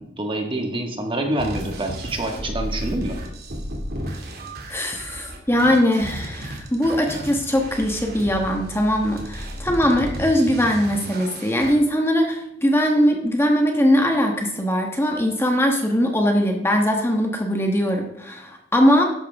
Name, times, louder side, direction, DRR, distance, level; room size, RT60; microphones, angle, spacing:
voice 1, 0.0-3.2, right 1 dB, 25° right, 3 dB, 1.8 m, -26 dB
sound 1, 1.4-11.7, equal, 55° right, 2.4 m, -33 dB
voice 2, 4.7-19.0, equal, 15° left, 2 dB, 1.3 m, -20 dB
13.0 x 10.5 x 3.6 m, 0.85 s
head